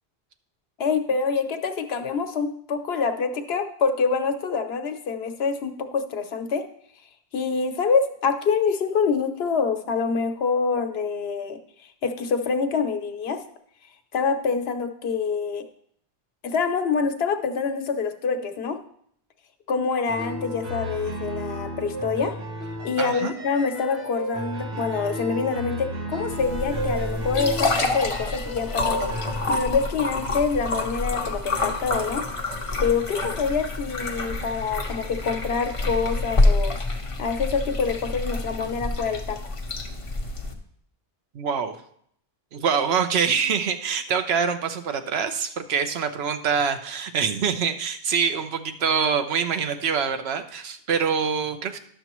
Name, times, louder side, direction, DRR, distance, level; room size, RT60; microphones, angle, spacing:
voice 1, 0.8-6.6 7.3-11.6 12.0-13.4 14.1-15.6 16.4-18.8 19.7-22.3 22.8-32.2 32.8-36.7 37.2-39.5, left 5 dB, 80° left, 7 dB, 1.0 m, -26 dB
sound 1, 20.1-29.5, equal, 65° right, 1.4 m, -33 dB
voice 2, 23.0-23.3 41.3-41.7 42.5-51.8, right 6 dB, 80° right, 8 dB, 0.9 m, -25 dB
sound 2, 26.3-40.5, left 2 dB, 35° left, 0.8 m, -27 dB
11.0 x 6.8 x 3.0 m, 0.67 s
omnidirectional pair, 1.0 m